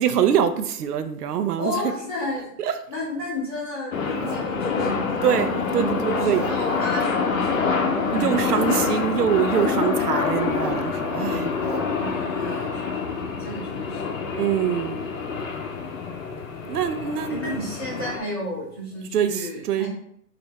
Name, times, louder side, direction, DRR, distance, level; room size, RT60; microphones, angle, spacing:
voice 1, 0.0-1.7 5.2-6.4 8.1-11.5 14.4-15.0 16.7-17.6 19.1-19.9, right 9 dB, 70° right, 0.6 m, -24 dB
voice 2, 1.6-2.5 2.9-7.8 8.1-9.0 12.0-14.0 17.3-19.9, left 1 dB, 15° left, 0.7 m, -33 dB
sound 1, 3.9-18.2, left 5 dB, 55° left, 0.7 m, -26 dB
sound 2, 4.0-5.8 6.2-7.1 7.4-7.9 8.3-8.6 8.9-9.0 9.2-9.7 10.0-12.0, left 1 dB, 25° right, 0.5 m, -35 dB
3.2 x 2.6 x 4.0 m
hypercardioid pair, 175°, 48 cm